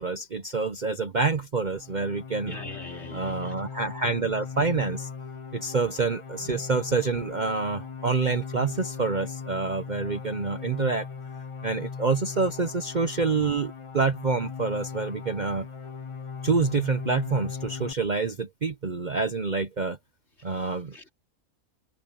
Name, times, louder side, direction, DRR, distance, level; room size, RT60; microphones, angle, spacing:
voice 1, 0.0-2.6 3.1-5.1 5.5-11.1 11.6-15.7 16.4-20.0 20.4-21.0, right 4 dB, 40° right, 0.8 m, -27 dB
sound 1, 1.7-17.9, left 5 dB, 30° left, 0.7 m, -38 dB
voice 2, 2.4-3.6 20.4-21.1, left 1 dB, 50° left, 3.8 m, -43 dB
omnidirectional pair, 1.4 m